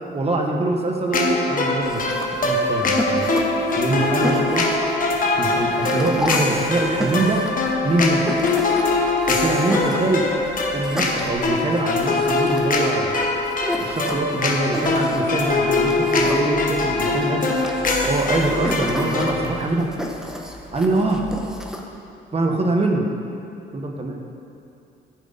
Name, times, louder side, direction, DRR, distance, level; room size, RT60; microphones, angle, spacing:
voice 1, 0.0-2.1 2.4-3.3 3.8-4.7 5.4-7.4 7.8-8.3 9.3-10.3 10.7-13.1 13.8-17.4 18.1-19.9 20.7-21.2 22.3-23.1 23.7-24.2, right 2 dB, 30° right, 1 dB, 1.3 m, -23 dB
sound 1, 1.1-19.5, left 3 dB, 45° left, 1.2 m, -22 dB
sound 2, 1.8-21.8, equal, 5° right, 1.0 m, -32 dB
14.5 x 5.1 x 4.1 m, 2.8 s
cardioid pair, 90°, 20 cm